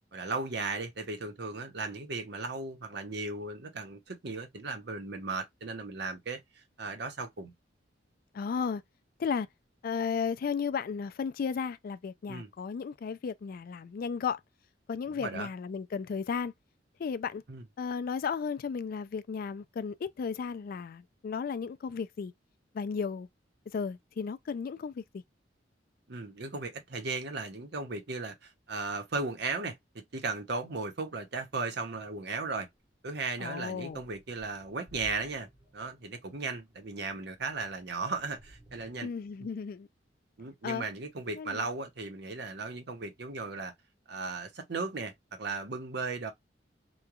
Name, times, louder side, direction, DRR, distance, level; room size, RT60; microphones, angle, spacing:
voice 1, 0.1-6.4 6.8-7.5 12.3-12.5 15.1-15.5 17.5-17.6 26.1-29.8 30.1-32.7 33.0-35.5 35.7-39.1 40.4-43.7 44.1-46.3, right 3 dB, 65° right, 0.8 m, -36 dB
voice 2, 8.3-8.8 9.2-9.5 9.8-14.4 14.9-16.5 17.0-17.4 17.8-22.3 22.7-23.3 23.7-25.2 33.4-34.0 39.0-39.9 40.6-40.8 41.3-41.7, left 6 dB, 50° left, 0.3 m, -34 dB
sound 1, 32.7-32.9 33.4-39.0, right 1 dB, 15° right, 0.9 m, -57 dB
3.1 x 2.2 x 2.3 m
head